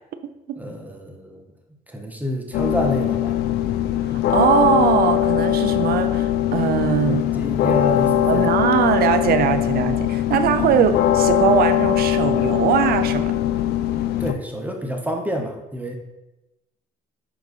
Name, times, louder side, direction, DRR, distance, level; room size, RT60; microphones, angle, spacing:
voice 1, 0.6-1.4 1.9-3.4 7.1-8.6 14.2-16.0, equal, 10° right, 2 dB, 1.0 m, -28 dB
sound 1, 2.5-14.3, left 12 dB, 75° left, 0.5 m, -21 dB
voice 2, 4.3-7.2 8.3-13.3, right 8 dB, 65° right, 10 dB, 0.6 m, -21 dB
7.3 x 4.5 x 4.0 m, 0.98 s
cardioid pair, 110°, 17 cm